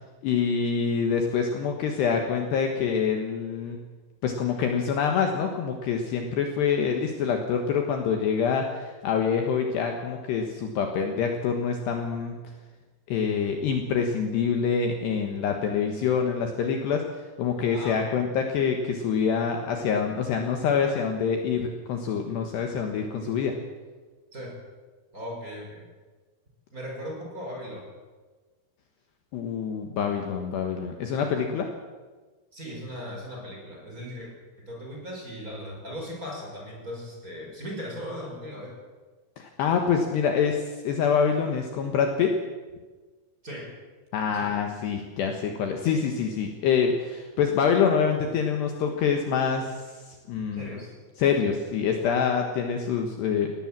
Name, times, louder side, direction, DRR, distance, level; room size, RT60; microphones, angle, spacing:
voice 1, 0.2-3.8 4.2-12.4 13.1-17.1 17.4-23.6 29.3-31.7 39.4-42.4 44.1-49.8 50.3-50.7 51.2-53.5, left 6 dB, 65° left, 3 dB, 3.1 m, -26 dB
voice 2, 17.7-18.2 24.3-24.6 25.1-25.8 26.7-27.9 32.5-34.3 34.6-38.8 43.4-43.7 44.3-44.5 50.5-50.9, equal, 15° right, -1 dB, 5.3 m, -38 dB
20.0 x 18.0 x 7.5 m, 1.3 s
omnidirectional pair, 5.9 m